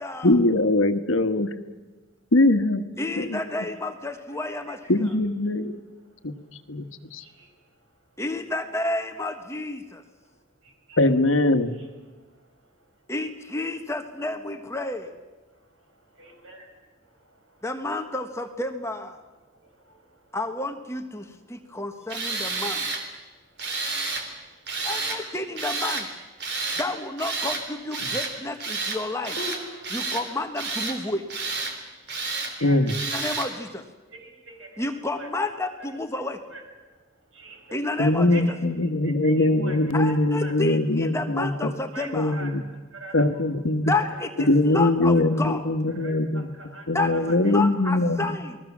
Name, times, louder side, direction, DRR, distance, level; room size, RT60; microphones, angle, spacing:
voice 1, 0.2-1.5 2.3-2.8 3.2-3.4 4.9-5.8 6.2-6.3 6.7-6.9 7.1-7.2 11.0-11.8 28.0-28.1 32.6-32.9 38.0-41.7 42.1-42.6 43.1-43.9 44.4-46.5 46.9-48.4, left 2 dB, 80° left, 9 dB, 1.3 m, -22 dB
voice 2, 3.0-4.8 8.2-10.0 13.1-15.1 17.6-19.2 20.3-22.9 24.8-26.1 26.7-29.4 29.9-31.3 33.1-33.8 34.8-36.4 37.7-38.3 39.9-42.3 43.9-45.6 46.9-48.6, left 2 dB, 15° left, 5 dB, 1.3 m, -30 dB
voice 3, 3.7-5.1 5.4-5.6 6.0-8.2 9.9-11.1 11.7-13.1 15.5-17.7 19.4-20.4 21.2-21.9 22.2-22.6 23.2-24.9 26.5-26.8 28.6-28.8 29.8-30.0 31.7-32.8 34.1-35.3 35.8-35.9 36.1-36.2 36.5-40.5 41.6-43.5 43.8-45.4 45.9-47.4, right 2 dB, 75° right, 3 dB, 5.9 m, -47 dB
Tools, 22.1-23.0 23.6-24.3 24.7-25.2 25.6-26.1 26.4-26.9 27.2-27.6 27.9-28.3 28.6-29.0 29.2-30.2 30.6-31.0 31.3-31.7 32.1-32.5 32.9-33.5, right 3 dB, 55° right, 3.4 m, -30 dB
sound 1, 24.8-25.4 29.4-30.3, left 1 dB, 40° left, 5.8 m, -40 dB
28.5 x 20.5 x 7.3 m, 1.2 s
head